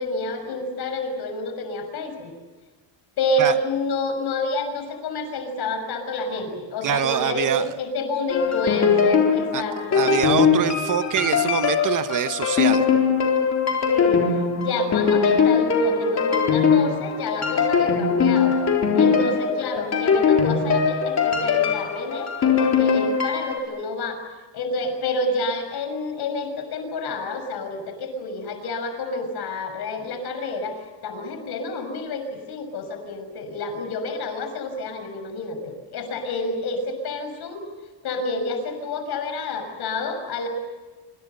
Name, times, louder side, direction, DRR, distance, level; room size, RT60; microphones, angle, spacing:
voice 1, 0.0-2.3 3.2-10.1 13.9-14.3 14.6-18.6 18.9-24.2 24.5-37.6 38.0-40.5, left 2 dB, 55° left, 7 dB, 6.3 m, -29 dB
voice 2, 6.8-7.7 9.5-9.6 9.9-12.9, right 9 dB, 45° right, 10 dB, 1.1 m, -24 dB
sound 1, 8.3-23.6, left 6 dB, 35° left, 4.0 m, -21 dB
27.0 x 25.5 x 6.8 m, 1.3 s
cardioid pair, 175°, 46 cm